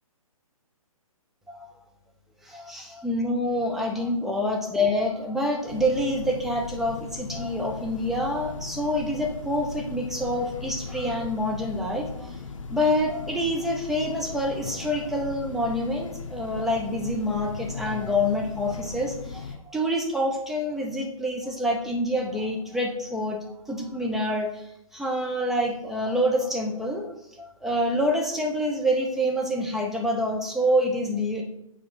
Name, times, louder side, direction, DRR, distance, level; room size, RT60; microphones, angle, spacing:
voice 1, 2.4-12.3 12.7-31.4, equal, ahead, 0 dB, 0.6 m, -27 dB
Train, 5.7-19.6, left 4 dB, 60° left, 0.9 m, -38 dB
5.0 x 4.4 x 5.6 m, 0.78 s
hypercardioid pair, 140°, 18 cm